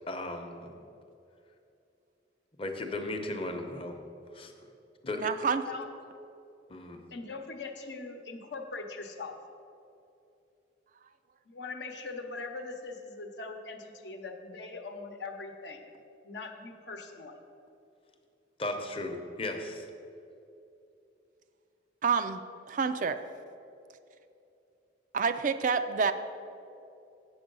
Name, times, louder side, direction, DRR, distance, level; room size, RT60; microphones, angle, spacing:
voice 1, 0.1-0.7 2.6-4.0 4.3-4.5 5.0-5.3 6.7-7.0 18.6-19.9, left 2 dB, 30° left, 4 dB, 0.8 m, -36 dB
voice 2, 5.2-5.6 22.0-22.4 22.7-23.2 25.1-26.1, right 5 dB, 45° right, 9 dB, 0.3 m, -28 dB
voice 3, 7.1-9.4 11.5-15.9 16.2-17.4, left 3 dB, 65° left, 4 dB, 0.9 m, -41 dB
8.7 x 6.9 x 5.4 m, 2.7 s
head